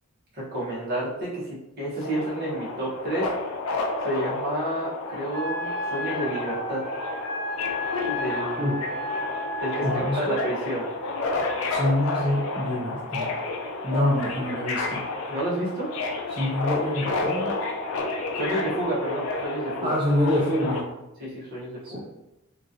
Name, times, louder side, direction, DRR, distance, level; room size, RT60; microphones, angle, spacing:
voice 1, 0.4-3.3 4.0-6.8 8.1-8.7 9.6-10.9 15.3-15.9 18.4-20.0 21.2-22.0, right 1 dB, 45° right, -7 dB, 1.0 m, -30 dB
Subway metro underground, 2.0-20.8, left 3 dB, 65° left, 0.4 m, -31 dB
Wind instrument woodwind instrument, 5.3-10.2, left 1 dB, 25° left, 0.8 m, -32 dB
voice 2, 9.8-10.2 11.7-13.3 13.8-15.1 16.3-17.6 19.8-20.9 21.8-22.0, left 1 dB, 25° right, -6 dB, 0.4 m, -26 dB
2.9 x 2.4 x 2.6 m, 0.92 s
head